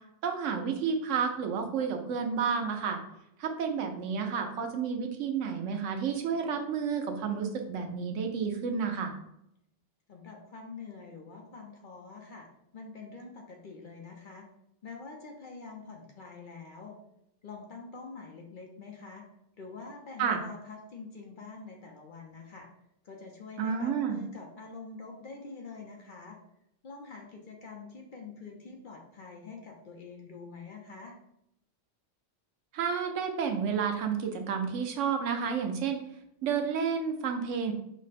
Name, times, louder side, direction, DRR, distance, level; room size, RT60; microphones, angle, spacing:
voice 1, 0.2-3.0 3.4-9.2 20.2-20.4 23.6-24.2 32.7-36.0 36.4-37.7, right 6 dB, 85° right, 4 dB, 1.0 m, -30 dB
voice 2, 10.1-12.5 12.7-14.4 14.8-17.0 17.4-19.2 19.6-22.7 23.0-26.4 26.8-31.2, left 4 dB, 50° left, 1 dB, 0.7 m, -45 dB
5.2 x 2.1 x 4.1 m, 0.78 s
omnidirectional pair, 1.2 m